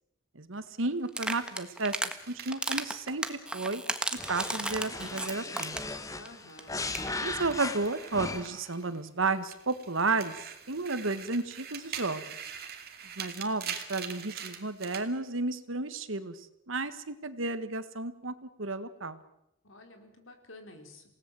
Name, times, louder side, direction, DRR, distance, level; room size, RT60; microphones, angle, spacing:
voice 1, 0.3-2.0 2.3-3.8 4.3-5.8 7.2-10.4 10.7-12.2 13.2-16.3 16.7-19.2, right 3 dB, 75° right, 12 dB, 1.6 m, -32 dB
sound 1, 1.1-2.1 2.5-6.0 6.3-6.4 6.6-6.7 6.9-7.1, right 1 dB, 5° right, 1.4 m, -34 dB
sound 2, 1.1-5.7 6.0-9.0 9.3-15.1, right 8 dB, 50° right, 2.6 m, -44 dB
sound 3, 4.2-8.7, left 3 dB, 15° left, 1.3 m, -38 dB
voice 2, 6.1-6.8 19.6-21.0, left 2 dB, 80° left, 5 dB, 4.4 m, -51 dB
28.5 x 18.0 x 7.7 m, 0.83 s
head